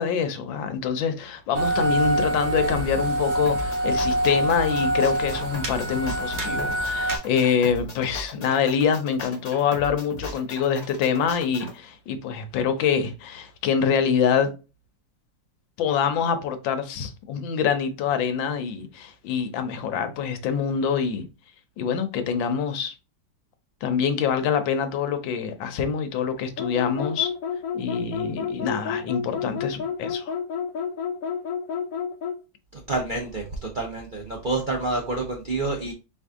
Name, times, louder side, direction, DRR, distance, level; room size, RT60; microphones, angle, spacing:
voice 1, 0.0-14.5 15.8-21.3 21.8-22.9 23.8-27.3 27.7-30.4, left 7 dB, 85° left, 1.5 m, -25 dB
sound 1, 1.5-7.2, right 1 dB, 45° right, 1.0 m, -25 dB
sound 2, 3.5-11.7, left 2 dB, 50° left, 0.4 m, -38 dB
sound 3, 26.6-32.4, left 7 dB, 70° left, 0.8 m, -30 dB
voice 2, 32.7-35.9, right 2 dB, 80° right, 0.4 m, -28 dB
4.6 x 2.7 x 3.5 m
omnidirectional pair, 2.0 m